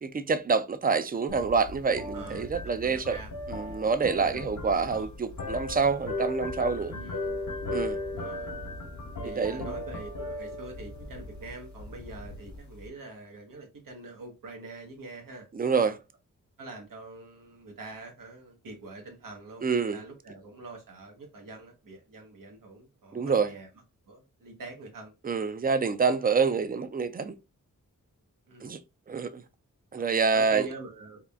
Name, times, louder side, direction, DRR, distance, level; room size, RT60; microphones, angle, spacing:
voice 1, 0.0-3.2 3.5-7.0 7.7-8.0 9.2-9.7 15.5-16.0 19.6-20.0 23.1-23.5 25.2-27.4 28.6-28.8 29.1-29.4 29.9-30.7, right 5 dB, 30° right, 0.4 m, -27 dB
sound 1, 1.3-12.9, left 2 dB, 60° left, 0.8 m, -37 dB
voice 2, 2.1-2.5 2.8-3.3 4.2-4.5 6.9-7.4 8.2-8.5 9.2-15.5 16.6-23.7 24.1-25.1 28.5-28.7 30.0-30.1 30.3-31.2, right 2 dB, 90° right, 1.2 m, -44 dB
3.6 x 2.4 x 3.4 m
wide cardioid pair, 100°, 32 cm